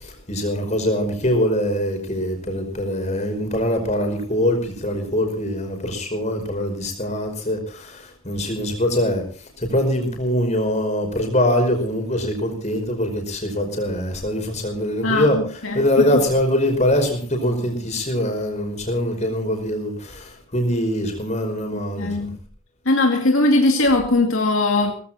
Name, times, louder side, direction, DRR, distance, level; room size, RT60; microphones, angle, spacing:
voice 1, 0.0-9.2 9.6-15.4 15.7-22.3, left 1 dB, 35° left, 5.3 m, -23 dB
voice 2, 15.0-16.2 21.9-22.4 22.9-24.9, left 2 dB, 70° left, 2.5 m, -20 dB
18.5 x 15.5 x 4.3 m
head